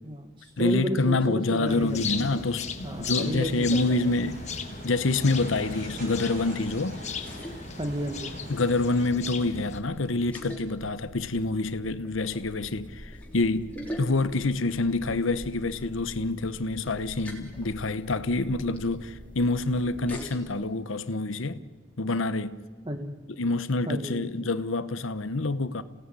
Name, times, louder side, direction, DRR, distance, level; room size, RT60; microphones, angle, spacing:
voice 1, 0.0-2.4 2.8-4.0 7.8-8.4 22.8-23.3 23.9-24.3, right 1 dB, 25° right, 1.3 m, -33 dB
voice 2, 0.6-4.4 4.8-7.0 8.5-21.6 22.0-22.6 23.4-25.8, left 2 dB, 75° left, 0.9 m, -27 dB
sound 1, 1.7-9.8, left 5 dB, 35° left, 1.6 m, -37 dB
sound 2, 3.1-9.1, right 1 dB, 45° right, 5.8 m, -45 dB
sound 3, 5.7-20.4, equal, 5° left, 3.6 m, -44 dB
28.5 x 17.0 x 9.7 m
head